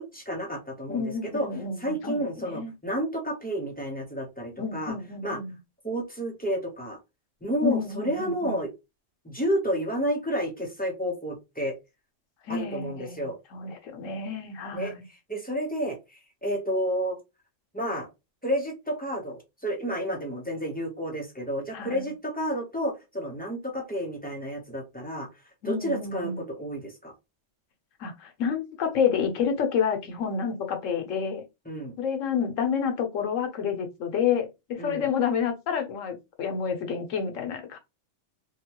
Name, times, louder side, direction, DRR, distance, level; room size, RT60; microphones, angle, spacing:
voice 1, 0.0-1.5 1.8-4.9 5.2-5.4 5.8-7.0 7.4-8.7 9.2-11.7 12.5-13.4 14.7-14.9 15.3-17.2 17.7-18.1 18.4-25.3 25.6-27.1 31.7-31.9 34.8-35.1, equal, 10° left, 0.6 m, -30 dB
voice 2, 0.9-2.7 4.6-5.6 7.6-8.6 12.5-15.0 21.7-22.1 25.6-26.4 28.0-31.4 32.0-37.8, left 6 dB, 80° left, 1.1 m, -29 dB
3.6 x 2.2 x 2.8 m
omnidirectional pair, 1.3 m